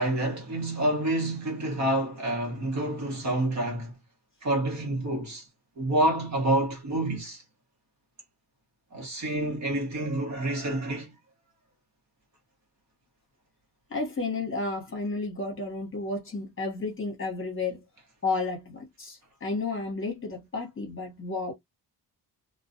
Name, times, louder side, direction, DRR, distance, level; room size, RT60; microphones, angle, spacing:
voice 1, 0.0-3.9 4.4-5.4 5.8-7.4 8.9-11.1, right 1 dB, 40° right, 1.0 m, -28 dB
voice 2, 13.9-17.8 18.2-21.5, left 3 dB, 30° left, 1.0 m, -32 dB
2.2 x 2.2 x 2.5 m
wide cardioid pair, 165°, 41 cm